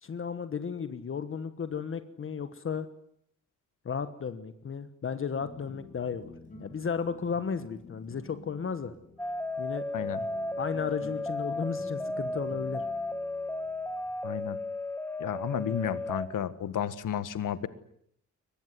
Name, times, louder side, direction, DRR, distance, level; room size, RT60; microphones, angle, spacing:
voice 1, 0.0-2.9 3.8-6.3 6.6-8.9 9.6-9.8 10.6-12.8, left 6 dB, 40° left, 11 dB, 1.3 m, -34 dB
sound 1, 5.4-14.7, left 3 dB, 25° left, 5.7 m, -51 dB
sound 2, 9.2-16.3, left 2 dB, 5° left, 1.6 m, -34 dB
voice 2, 14.2-14.6 15.2-17.7, left 9 dB, 80° left, 14 dB, 1.6 m, -32 dB
23.0 x 20.5 x 9.7 m, 0.71 s
wide cardioid pair, 160°, 31 cm